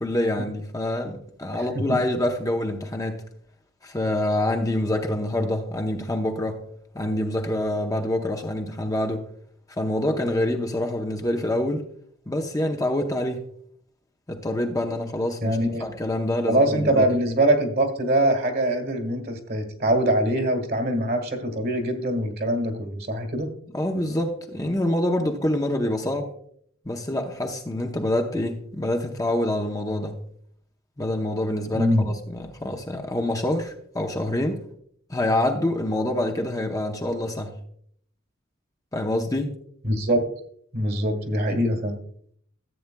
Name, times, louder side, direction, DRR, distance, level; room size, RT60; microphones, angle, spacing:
voice 1, 0.0-3.2 3.8-6.6 6.9-9.2 9.8-11.8 12.3-13.4 14.3-17.1 23.7-26.3 26.8-30.2 31.0-34.6 35.1-37.6 38.9-39.5, left 1 dB, 15° left, 0.7 m, -26 dB
voice 2, 1.5-2.0 15.4-15.8 16.5-23.5 31.7-32.1 39.8-40.3 40.7-42.0, right 1 dB, 45° right, 1.6 m, -23 dB
14.0 x 8.4 x 2.2 m
head